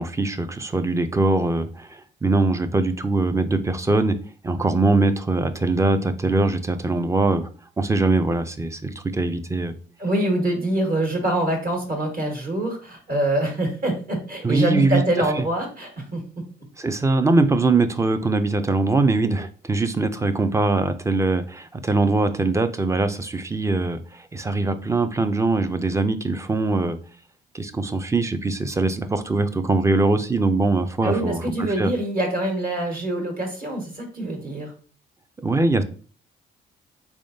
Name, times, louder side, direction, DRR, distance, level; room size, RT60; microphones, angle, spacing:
voice 1, 0.0-4.2 4.4-7.5 7.8-9.7 14.4-15.0 15.4-15.5 16.8-27.0 27.5-31.9 35.4-35.8, right 3 dB, 15° right, 0.4 m, -22 dB
voice 2, 10.0-16.5 31.0-34.7, right 1 dB, 45° right, 1.4 m, -25 dB
3.5 x 3.5 x 2.6 m
cardioid pair, 90°, 20 cm